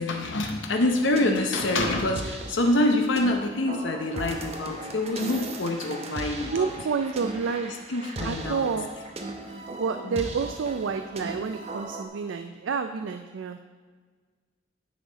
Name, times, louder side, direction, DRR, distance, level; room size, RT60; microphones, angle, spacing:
voice 1, 0.0-6.7 7.7-8.7 10.0-10.3, left 1 dB, 75° left, 3 dB, 0.8 m, -26 dB
sound 1, 1.0-12.1, right 2 dB, 35° right, 0.9 m, -38 dB
voice 2, 6.5-7.7 8.2-8.9 9.7-13.6, right 5 dB, 85° right, 7 dB, 0.4 m, -29 dB
9.9 x 6.5 x 4.0 m, 1.5 s
head